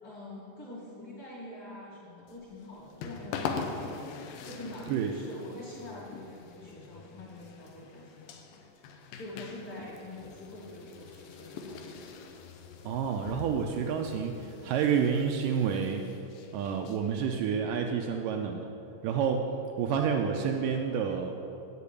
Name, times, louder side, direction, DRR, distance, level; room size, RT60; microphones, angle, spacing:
voice 1, 0.0-3.9 4.4-8.4 8.8-12.0, left 1 dB, 40° left, -6 dB, 2.6 m, -45 dB
sound 1, 2.3-17.4, left 5 dB, 80° left, 2.5 m, -43 dB
voice 2, 12.8-16.0 16.5-18.7 19.0-21.4, right 7 dB, 80° right, 3 dB, 1.9 m, -29 dB
8.5 x 6.9 x 8.3 m, 2.9 s
omnidirectional pair, 4.3 m